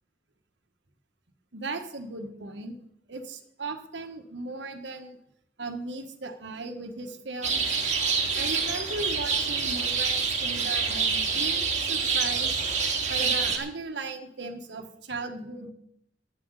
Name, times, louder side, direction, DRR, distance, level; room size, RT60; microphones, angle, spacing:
voice 1, 1.5-2.7 3.1-5.2 5.6-7.8 8.4-12.6 13.1-15.7, right 3 dB, 85° right, 5 dB, 1.5 m, -37 dB
sound 1, 7.4-13.6, right 5 dB, 45° right, 2.3 m, -26 dB
10.5 x 7.9 x 8.1 m, 0.74 s
head